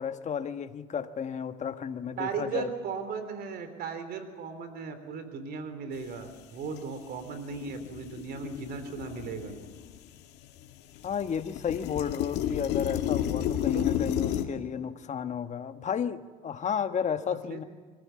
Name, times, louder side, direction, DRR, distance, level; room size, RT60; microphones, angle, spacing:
voice 1, 0.0-2.7 11.0-17.6, left 7 dB, 45° left, 10 dB, 1.3 m, -32 dB
voice 2, 2.2-9.5 13.7-13.9 17.3-17.6, right 5 dB, 65° right, 9 dB, 3.5 m, -37 dB
sound 1, 6.6-6.8 7.1-10.1 10.4-14.4, left 11 dB, 80° left, 1.9 m, -32 dB
24.0 x 15.5 x 8.7 m, 1.5 s
supercardioid pair, 85°, 17 cm